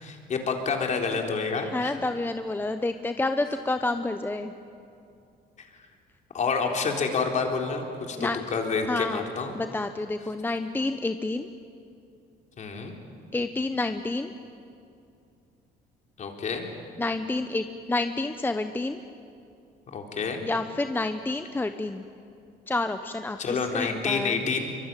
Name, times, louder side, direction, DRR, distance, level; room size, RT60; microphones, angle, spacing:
voice 1, 0.0-1.9 5.6-5.7 6.3-9.5 12.6-12.9 16.2-16.6 19.9-20.4 23.4-24.8, left 5 dB, 45° left, 2 dB, 3.8 m, -28 dB
voice 2, 1.7-4.5 8.2-8.4 8.9-9.2 9.5-11.5 13.3-14.3 17.0-19.0 20.4-22.0 22.7-24.4, left 2 dB, 10° left, 8 dB, 0.8 m, -29 dB
24.0 x 23.0 x 9.1 m, 2.6 s
cardioid pair, 110°, 17 cm